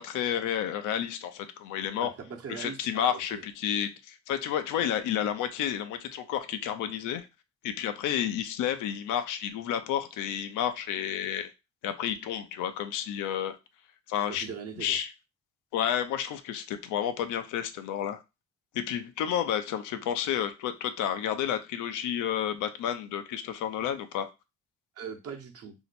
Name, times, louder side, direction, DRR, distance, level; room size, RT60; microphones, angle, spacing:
voice 1, 0.0-2.1 2.5-7.3 7.6-11.5 11.8-13.6 14.1-14.5 14.8-15.1 15.7-18.2 18.7-24.3, left 9 dB, 90° left, 0.5 m, -31 dB
voice 2, 2.0-3.4 14.3-15.0 25.0-25.7, right 6 dB, 50° right, 0.9 m, -40 dB
2.8 x 2.1 x 4.0 m
cardioid pair, 90°, 30 cm